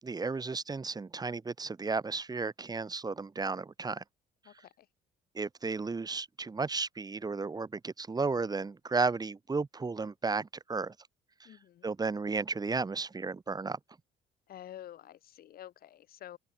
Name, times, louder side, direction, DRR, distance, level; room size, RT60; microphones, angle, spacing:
voice 1, 0.0-4.0 5.3-10.9 11.8-13.8, right 4 dB, 25° right, 6.3 m, -33 dB
voice 2, 4.5-4.9 11.4-11.9 14.5-16.4, left 12 dB, 60° left, 7.7 m, -49 dB
open air
cardioid pair, 110°, 17 cm